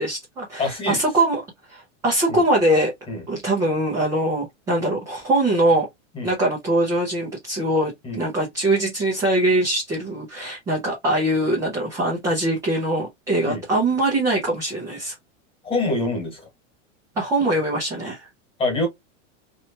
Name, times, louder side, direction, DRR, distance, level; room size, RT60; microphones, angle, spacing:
voice 1, 0.0-1.4 1.7-2.9 3.3-5.9 6.2-15.1 17.2-18.3, right 1 dB, 10° right, 0.5 m, -22 dB
voice 2, 0.6-1.0 2.3-2.4 3.1-3.2 6.1-6.3 8.0-8.2 13.5-13.6 15.6-16.4 18.6-18.9, left 2 dB, 15° left, 1.4 m, -25 dB
3.2 x 2.9 x 2.7 m
supercardioid pair, 170°, 38 cm